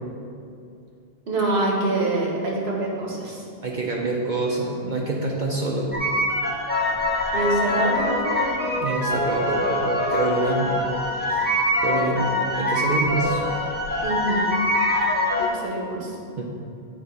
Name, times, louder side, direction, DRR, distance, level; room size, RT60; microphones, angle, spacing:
voice 1, 1.3-3.4 7.3-8.5 14.0-14.5 15.4-16.2, right 2 dB, 75° right, -2 dB, 1.5 m, -25 dB
voice 2, 3.6-5.9 8.8-10.7 11.3-11.4 11.8-13.4 16.4-16.5, right 2 dB, 50° right, -2 dB, 0.8 m, -26 dB
sound 1, 5.9-15.5, left 1 dB, 10° left, 0.6 m, -24 dB
8.1 x 3.7 x 5.4 m, 2.5 s
omnidirectional pair, 1.1 m